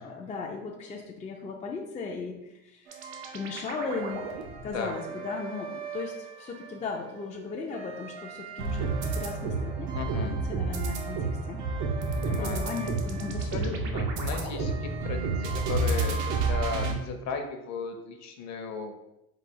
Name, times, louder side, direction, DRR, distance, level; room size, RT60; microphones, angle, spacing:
voice 1, 0.0-2.9 3.3-4.3 4.6-11.6 12.2-13.8, left 4 dB, 20° left, 0 dB, 0.4 m, -37 dB
sound 1, 2.9-7.0 7.4-16.9, right 3 dB, 85° right, 0.9 m, -31 dB
voice 2, 4.6-5.0 9.9-10.4 12.1-12.6 13.5-16.2 16.5-19.0, left 5 dB, 50° left, 5 dB, 0.7 m, -36 dB
4.0 x 2.4 x 4.6 m, 0.90 s
cardioid pair, 140°, 36 cm